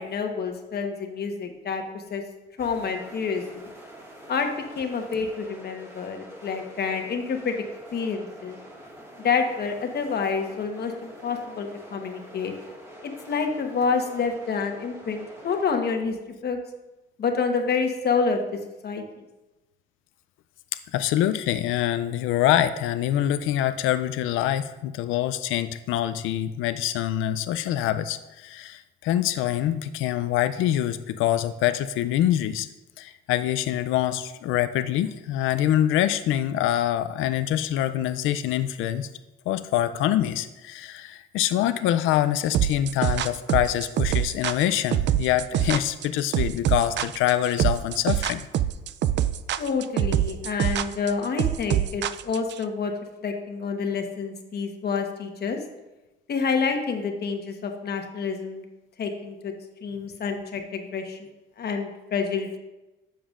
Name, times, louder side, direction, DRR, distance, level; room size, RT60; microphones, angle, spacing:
voice 1, 0.0-1.8 2.1-2.2 2.6-3.7 4.3-4.5 4.7-7.5 7.9-8.6 9.2-12.5 13.0-16.1 16.4-16.6 17.2-18.4 18.8-19.0 49.6-52.9 53.2-55.6 56.3-58.6 59.0-59.5 59.8-61.2 61.6-62.6, left 5 dB, 55° left, 4 dB, 1.1 m, -28 dB
sound 1, 2.6-15.6, equal, 15° right, 1.7 m, -45 dB
voice 2, 20.9-32.7 33.0-39.1 39.5-48.5, left 12 dB, 90° left, 11 dB, 0.4 m, -25 dB
sound 2, 42.5-52.6, right 11 dB, 65° right, 0.4 m, -24 dB
10.5 x 7.0 x 2.5 m, 1.0 s
cardioid pair, 90°, 20 cm